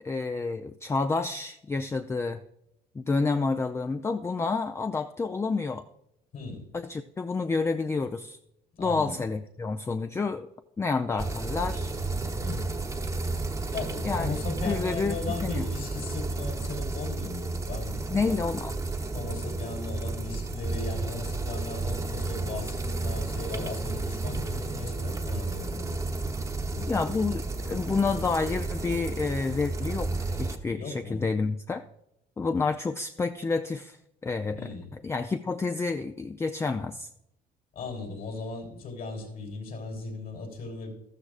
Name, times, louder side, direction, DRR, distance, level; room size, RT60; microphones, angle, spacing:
voice 1, 0.0-2.4 2.9-5.8 6.7-8.4 8.8-10.5 10.8-11.9 14.0-14.3 14.6-15.2 15.4-15.7 18.1-18.7 26.9-31.8 32.4-34.0 34.2-34.7 35.0-37.1, left 4 dB, 15° left, 8 dB, 0.4 m, -29 dB
voice 2, 6.3-6.7 8.8-9.2 12.4-12.7 13.7-18.0 19.1-26.0 26.7-27.2 30.7-31.3 34.5-34.9 37.7-40.9, left 4 dB, 60° left, 3 dB, 3.5 m, -37 dB
sound 1, 11.2-30.6, right 3 dB, 20° right, 1.0 m, -32 dB
13.5 x 13.0 x 2.4 m, 0.81 s
cardioid pair, 110°, 17 cm